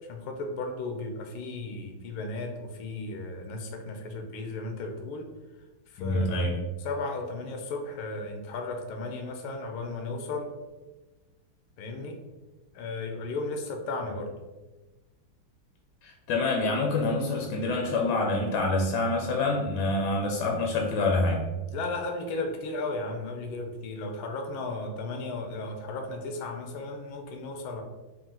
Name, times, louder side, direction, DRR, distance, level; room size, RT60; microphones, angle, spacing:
voice 1, 0.1-5.3 5.9-10.5 11.8-12.1 12.7-14.3 21.7-27.8, left 2 dB, 85° left, 4 dB, 1.5 m, -35 dB
voice 2, 6.0-6.5 16.0-21.4, left 2 dB, 70° left, 0 dB, 1.0 m, -26 dB
4.3 x 2.5 x 3.7 m, 1.2 s
omnidirectional pair, 2.3 m